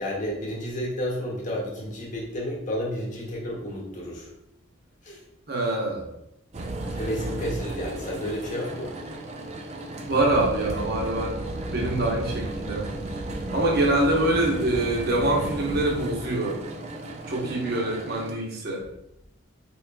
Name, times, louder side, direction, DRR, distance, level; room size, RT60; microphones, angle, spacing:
voice 1, 0.0-4.3 5.0-5.2 6.9-8.9, left 1 dB, 40° left, -3 dB, 0.9 m, -31 dB
voice 2, 5.5-6.1 10.0-11.3 11.7-12.9 13.5-16.6 17.3-18.8, right 1 dB, 50° right, -1 dB, 0.8 m, -25 dB
sound 1, 6.5-18.3, right 2 dB, 30° right, 0.4 m, -34 dB
4.6 x 3.0 x 2.2 m, 0.83 s
head